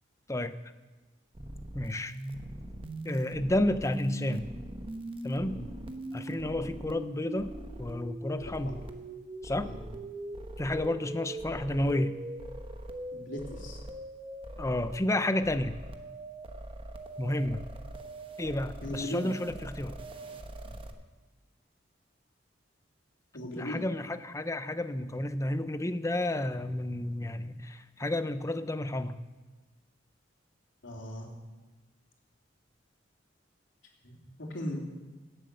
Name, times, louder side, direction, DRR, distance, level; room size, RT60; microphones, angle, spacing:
sound 1, 1.3-20.9, right 1 dB, 30° right, 1.0 m, -41 dB
voice 1, 1.7-2.2 3.0-4.5 5.2-5.6 6.1-7.5 7.8-8.8 9.4-9.7 10.6-12.1 14.6-15.8 17.2-17.6 18.4-20.0 23.6-29.2, left 1 dB, 15° left, 11 dB, 0.6 m, -31 dB
voice 2, 13.1-13.8 18.8-19.3 23.3-23.8 30.8-31.3 34.0-34.8, left 1 dB, 90° left, -1 dB, 3.2 m, -38 dB
17.5 x 7.9 x 6.7 m, 1.3 s
head